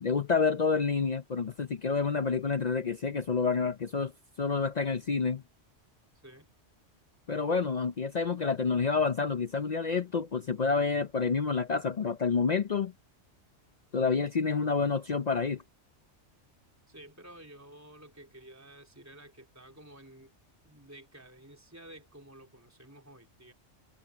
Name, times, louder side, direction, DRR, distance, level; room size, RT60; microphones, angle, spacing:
voice 1, 0.0-4.1 4.4-5.4 7.3-12.9 13.9-15.6, left 5 dB, 45° left, 0.6 m, -28 dB
voice 2, 16.9-20.3 20.6-23.5, right 1 dB, 15° right, 3.7 m, -52 dB
omnidirectional pair, 1.2 m